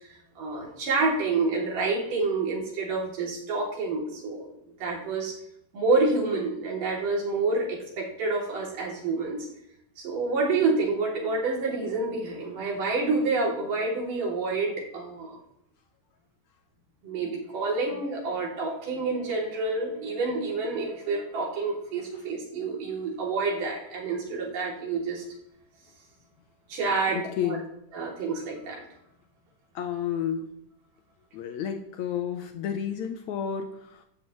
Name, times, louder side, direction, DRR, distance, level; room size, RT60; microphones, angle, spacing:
voice 1, 0.4-4.5 4.8-5.4 5.7-9.5 10.0-15.4 17.0-25.2 26.7-27.2 27.5-27.6 27.9-28.8, right 3 dB, 75° right, -3 dB, 4.7 m, -28 dB
voice 2, 27.1-27.7 29.7-30.5 31.3-34.0, left 8 dB, 70° left, 6 dB, 1.9 m, -31 dB
16.5 x 13.0 x 3.2 m, 0.77 s
omnidirectional pair, 3.8 m